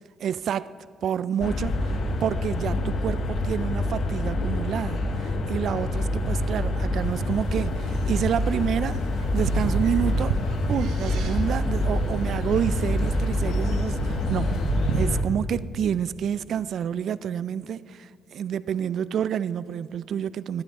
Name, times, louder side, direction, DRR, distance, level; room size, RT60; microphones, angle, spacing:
voice 1, 0.2-0.7 1.0-10.3 10.7-14.5 14.9-20.6, right 9 dB, 65° right, 0.3 m, -29 dB
sound 1, 1.4-15.2, left 1 dB, 60° left, 0.9 m, -26 dB
sound 2, 7.0-15.1, right 3 dB, 85° right, 1.1 m, -32 dB
14.0 x 11.0 x 3.6 m
cardioid pair, 90°, 0 cm